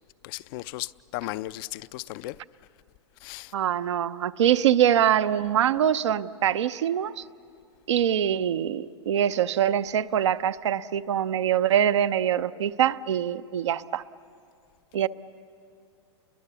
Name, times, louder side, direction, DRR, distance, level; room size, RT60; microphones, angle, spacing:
voice 1, 0.2-2.4 3.2-3.5, left 17 dB, 50° left, 0.5 m, -36 dB
voice 2, 3.5-7.2 7.9-14.0 14.9-15.1, right 10 dB, 75° right, 0.7 m, -24 dB
30.0 x 22.5 x 7.0 m
hypercardioid pair, 115°, 15 cm